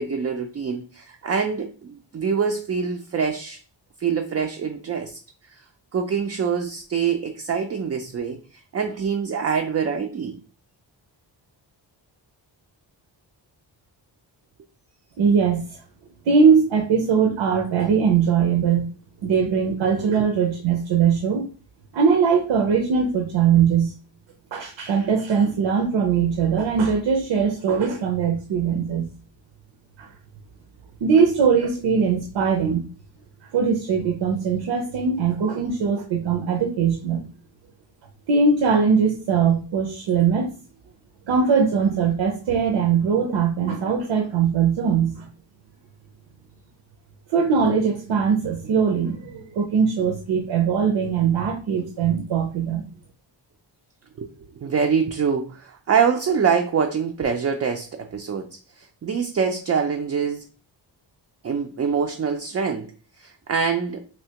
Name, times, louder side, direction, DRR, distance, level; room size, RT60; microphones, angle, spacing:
voice 1, 0.0-3.6 4.0-5.6 5.9-10.4 20.2-20.3 54.2-54.3 54.6-58.5 58.8-60.4 61.4-62.9 63.2-64.0, right 6 dB, 35° right, 4 dB, 0.4 m, -25 dB
voice 2, 15.2-15.7 16.3-18.9 19.2-21.4 21.9-23.9 24.5-29.1 30.0-30.1 31.0-32.8 33.5-37.3 38.3-40.5 41.3-45.2 47.3-52.9, right 6 dB, 80° right, 3 dB, 0.7 m, -21 dB
3.3 x 2.7 x 2.8 m, 0.36 s
wide cardioid pair, 120°, 44 cm